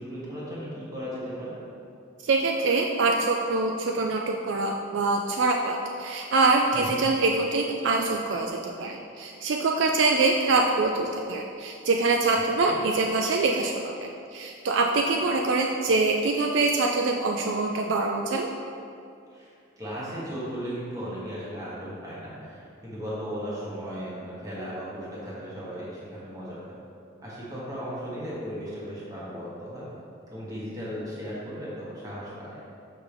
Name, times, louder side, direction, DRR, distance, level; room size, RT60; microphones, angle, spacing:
voice 1, 0.0-1.6 6.7-7.0 12.6-12.8 19.3-26.8 27.2-29.9 30.3-32.6, equal, 15° right, -8 dB, 1.5 m, -36 dB
voice 2, 2.2-18.5, right 3 dB, 60° right, 2 dB, 0.4 m, -24 dB
5.8 x 5.8 x 3.4 m, 2.5 s
head